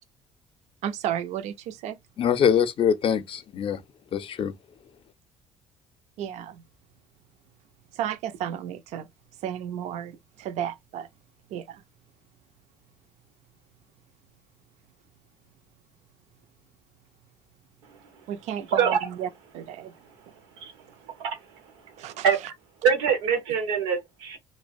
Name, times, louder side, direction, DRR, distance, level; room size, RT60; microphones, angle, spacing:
voice 1, 0.8-2.0 6.2-6.6 8.0-9.0 9.4-11.1 11.5-11.8 18.3-19.3 19.5-19.9 22.0-22.3, right 10 dB, 65° right, 0.4 m, -33 dB
voice 2, 2.2-3.8 4.1-4.5, left 8 dB, 50° left, 0.5 m, -23 dB
voice 3, 22.8-24.4, right 7 dB, 90° right, 0.8 m, -24 dB
2.3 x 2.1 x 2.5 m
supercardioid pair, 75°, 12 cm